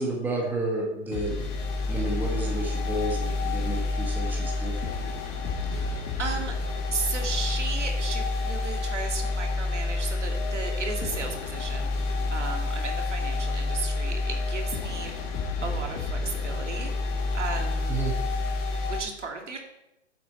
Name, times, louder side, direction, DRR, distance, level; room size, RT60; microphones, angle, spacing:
voice 1, 0.0-1.5 1.9-4.7 5.0-5.1 17.9-18.1, right 2 dB, 5° right, -2 dB, 1.6 m, -31 dB
sound 1, 1.1-19.0, left 3 dB, 20° left, 1.6 m, -29 dB
voice 2, 5.7-6.6 6.9-15.1 15.6-18.0 18.7-19.6, right 4 dB, 75° right, 2 dB, 2.2 m, -35 dB
9.4 x 7.6 x 4.4 m, 0.90 s
figure-of-eight pair, 135°, 36 cm